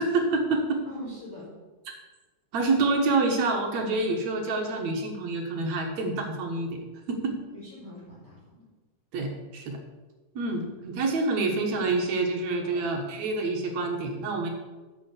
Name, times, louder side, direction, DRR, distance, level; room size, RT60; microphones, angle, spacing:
voice 1, 0.0-0.8 2.5-6.8 7.1-7.4 9.1-9.8 10.3-14.5, right 3 dB, 70° right, 2 dB, 2.7 m, -27 dB
voice 2, 0.8-1.5 7.5-8.7 10.5-10.7 12.6-12.8, left 1 dB, 20° left, -7 dB, 4.7 m, -43 dB
8.6 x 6.9 x 8.2 m, 1.2 s
omnidirectional pair, 3.4 m